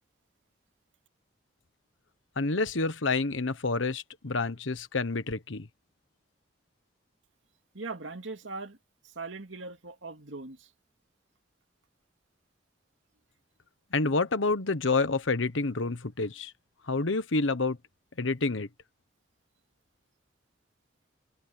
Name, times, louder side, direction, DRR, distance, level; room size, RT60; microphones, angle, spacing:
voice 1, 2.4-5.7 13.9-16.5 16.8-17.8 18.2-18.7, left 3 dB, 80° left, 1.2 m, -28 dB
voice 2, 7.7-8.8 9.0-10.7, right 3 dB, 75° right, 2.6 m, -40 dB
head